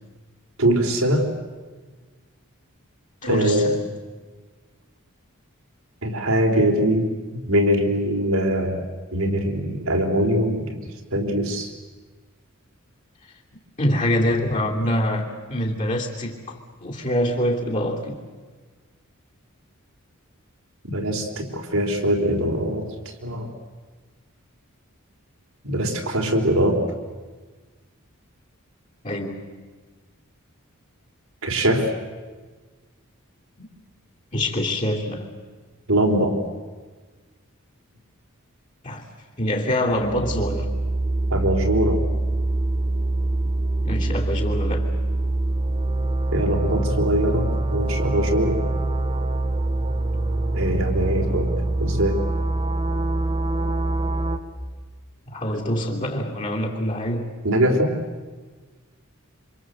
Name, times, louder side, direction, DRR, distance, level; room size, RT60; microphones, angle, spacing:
voice 1, 0.6-1.3 3.2-3.7 6.0-8.8 9.1-10.8 11.1-11.7 20.8-22.8 23.2-23.5 25.6-26.8 31.4-31.9 35.9-36.4 41.3-42.0 46.3-48.6 50.5-51.5 51.8-52.2 57.4-58.0, right 1 dB, 75° right, 2 dB, 4.1 m, -22 dB
voice 2, 3.2-3.8 13.5-18.2 29.0-29.5 33.6-33.7 34.3-35.3 38.8-39.0 39.4-40.7 43.8-44.9 55.3-57.3, equal, 35° left, -2 dB, 3.0 m, -25 dB
sound 1, 39.9-54.4, right 2 dB, 30° right, 1.7 m, -24 dB
27.0 x 26.0 x 7.9 m, 1.4 s
head